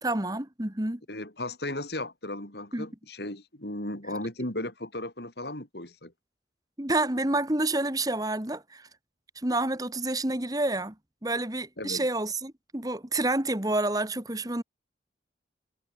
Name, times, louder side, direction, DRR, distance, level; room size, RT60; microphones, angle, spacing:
voice 1, 0.0-1.0 2.7-2.9 6.8-8.9 9.4-10.9 11.2-14.6, right 2 dB, 20° right, 1.8 m, -28 dB
voice 2, 1.1-6.1 11.8-12.1, left 1 dB, 65° left, 5.9 m, -36 dB
head